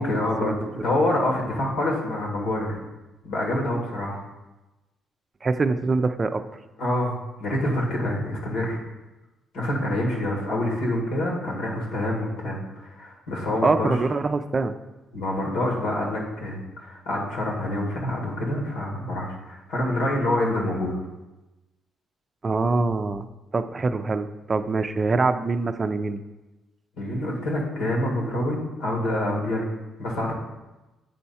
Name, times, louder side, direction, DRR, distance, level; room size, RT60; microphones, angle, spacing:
voice 1, 0.0-2.8 3.2-4.2 6.8-7.1 7.4-8.8 9.5-13.9 15.1-20.9 27.0-29.7 30.0-30.3, left 1 dB, 85° left, -1 dB, 1.9 m, -26 dB
voice 2, 5.4-6.4 13.6-14.7 22.4-23.3 23.5-26.2, right 3 dB, 35° right, 9 dB, 0.4 m, -24 dB
7.8 x 4.5 x 4.2 m, 1.1 s
cardioid pair, 90°, 0 cm